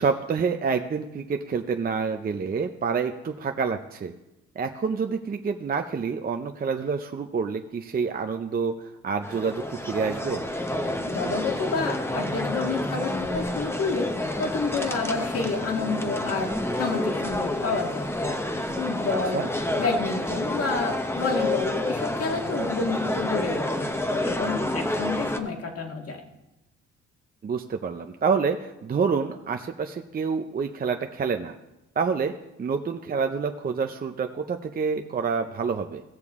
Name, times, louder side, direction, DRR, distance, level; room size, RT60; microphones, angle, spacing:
voice 1, 0.0-4.1 4.6-8.8 9.0-10.4 19.3-19.5 27.4-31.6 32.0-32.3 32.6-36.0, right 5 dB, 30° right, 5 dB, 0.6 m, -27 dB
sound 1, 9.2-25.4, left 1 dB, 10° left, 0.8 m, -29 dB
voice 2, 11.1-14.1 14.4-16.5 16.8-18.1 18.8-19.4 19.8-23.9 24.2-26.2, left 4 dB, 50° left, 2 dB, 1.8 m, -29 dB
17.0 x 6.7 x 3.6 m, 0.96 s
cardioid pair, 90°, 30 cm